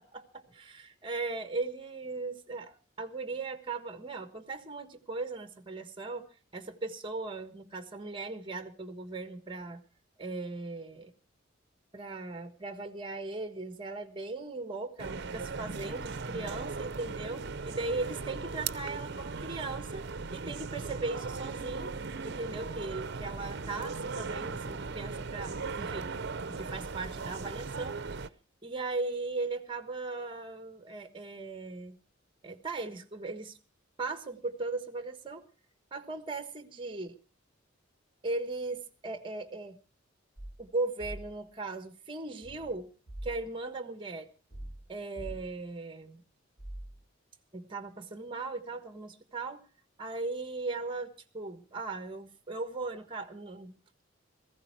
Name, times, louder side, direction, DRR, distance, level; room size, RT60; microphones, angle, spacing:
voice 1, 0.3-6.3 6.5-9.8 10.2-11.1 11.9-20.1 20.3-21.9 22.2-26.1 26.5-28.0 28.6-32.0 32.4-33.6 34.0-35.4 35.9-37.2 38.2-39.8 40.6-42.9 43.2-44.3 44.9-46.2 47.5-49.6 50.0-54.0, right 3 dB, 25° right, 9 dB, 1.4 m, -38 dB
sound 1, 15.0-28.3, right 4 dB, 60° right, 0.7 m, -38 dB
sound 2, 40.4-40.7 41.0-41.4 42.4-43.5 44.5-45.6 46.6-47.0, right 1 dB, 35° left, 6.5 m, -44 dB
16.5 x 15.0 x 4.5 m, 0.37 s
head